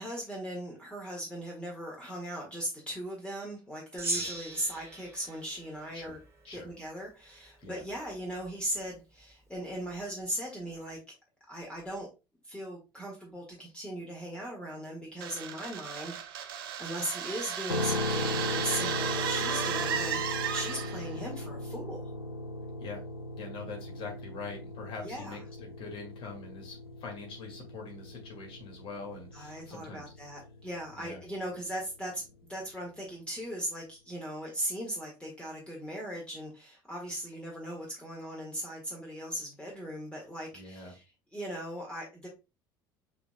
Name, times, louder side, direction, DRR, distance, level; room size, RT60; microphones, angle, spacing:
voice 1, 0.0-6.2 6.5-11.0 11.5-12.1 12.4-16.2 16.8-22.0 25.0-25.4 29.3-41.0 41.3-42.3, right 1 dB, 10° left, -2 dB, 1.6 m, -38 dB
Gong, 4.0-6.6, right 1 dB, 20° right, 1.6 m, -38 dB
sound 1, 15.2-21.1, right 9 dB, 70° right, 0.6 m, -34 dB
sound 2, 17.7-31.7, left 2 dB, 85° left, 0.4 m, -38 dB
voice 2, 23.4-30.1 31.0-31.2 40.5-40.9, left 4 dB, 45° left, 1 dB, 2.1 m, -44 dB
6.6 x 3.6 x 2.2 m, 0.27 s
figure-of-eight pair, 65°, 12 cm